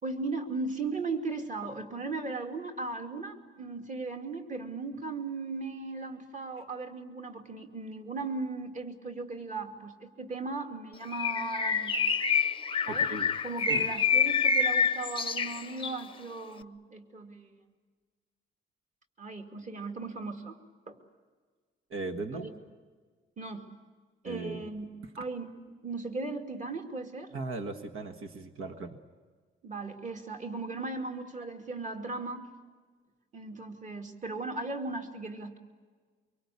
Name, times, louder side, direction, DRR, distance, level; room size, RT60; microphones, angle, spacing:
voice 1, 0.0-12.0 12.9-13.1 13.4-17.6 19.2-20.6 20.9-21.0 22.3-22.5 23.4-23.7 24.2-24.9 25.2-25.6 25.8-27.3 29.6-32.5 33.3-35.6, right 3 dB, 35° right, 4 dB, 2.5 m, -37 dB
Bird, 11.1-16.0, left 5 dB, 25° left, 0.7 m, -27 dB
voice 2, 12.9-13.3 13.7-13.9 21.9-22.5 24.2-24.6 27.3-29.0, right 3 dB, 80° right, 7 dB, 1.7 m, -37 dB
25.0 x 24.0 x 8.5 m, 1.5 s
wide cardioid pair, 160°, 21 cm